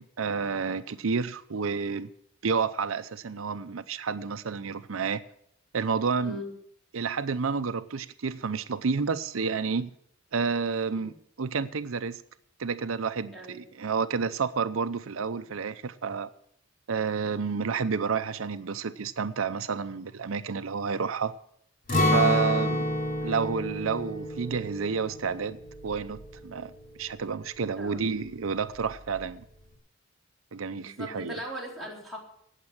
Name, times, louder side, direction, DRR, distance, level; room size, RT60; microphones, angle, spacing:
voice 1, 0.0-2.1 2.4-5.2 5.7-6.4 6.9-9.9 10.3-11.1 11.4-12.2 12.6-16.3 16.9-21.3 22.0-22.8 23.2-25.6 25.8-26.7 27.0-29.4 30.5-31.4, right 5 dB, 90° right, 0.6 m, -30 dB
voice 2, 6.2-6.5 10.9-11.1 13.3-13.6 22.5-22.9 27.7-28.0 30.7-32.2, equal, ahead, 4.0 m, -40 dB
Acoustic guitar, 21.9-27.8 28.1-28.3 28.7-29.2, left 1 dB, 45° left, 3.0 m, -29 dB
18.5 x 7.5 x 6.0 m
head